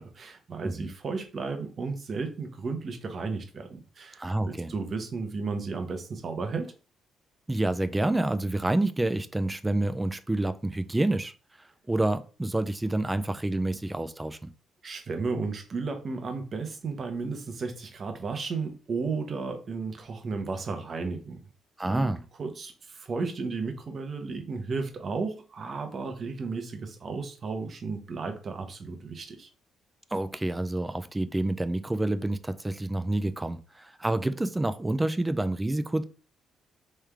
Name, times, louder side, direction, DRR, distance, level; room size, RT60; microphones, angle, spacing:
voice 1, 0.0-6.7 14.8-21.4 21.8-22.1 22.4-29.5, right 4 dB, 45° right, 0.8 m, -34 dB
voice 2, 4.2-4.7 7.5-11.3 11.9-14.5 21.8-22.2 30.1-36.0, right 2 dB, 15° right, 0.4 m, -28 dB
3.5 x 3.2 x 3.3 m
cardioid pair, 90°, 0 cm